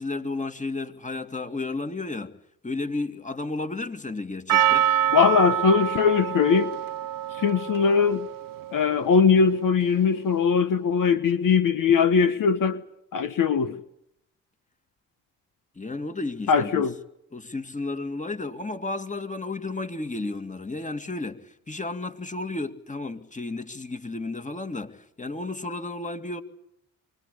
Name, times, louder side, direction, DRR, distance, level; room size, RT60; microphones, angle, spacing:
voice 1, 0.0-2.4 2.6-4.9 15.8-16.9 17.3-26.4, left 2 dB, 20° left, 2.7 m, -32 dB
Percussion, 4.5-9.5, right 10 dB, 75° right, 1.0 m, -26 dB
voice 2, 5.1-6.7 7.3-8.3 8.7-12.8 13.1-13.8 16.5-16.9, left 6 dB, 70° left, 1.5 m, -21 dB
24.5 x 20.5 x 8.6 m
supercardioid pair, 60°, 33 cm